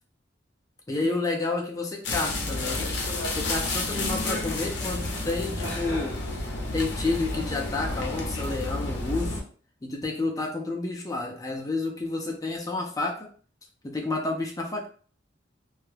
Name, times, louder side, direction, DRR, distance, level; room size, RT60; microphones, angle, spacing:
voice 1, 0.9-2.9 3.3-6.2 6.7-9.4 9.8-13.3 13.8-14.9, left 3 dB, 20° left, 0 dB, 0.4 m, -30 dB
sound 1, 2.0-9.4, left 2 dB, 60° left, 0.6 m, -30 dB
2.3 x 2.0 x 3.1 m, 0.43 s
head